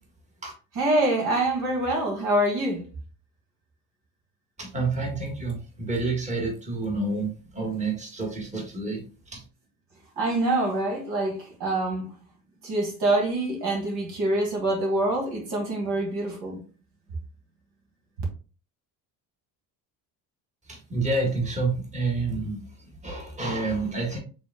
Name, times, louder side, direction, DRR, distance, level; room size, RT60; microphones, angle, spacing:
voice 1, 0.7-2.9 10.2-12.1 12.6-16.6, right 1 dB, 75° right, 2.2 m, -25 dB
voice 2, 4.6-9.0 9.3-9.4 20.7-22.6 23.0-24.2, right 3 dB, 20° right, 1.5 m, -28 dB
5.0 x 3.6 x 2.3 m
cardioid pair, 105°, 39 cm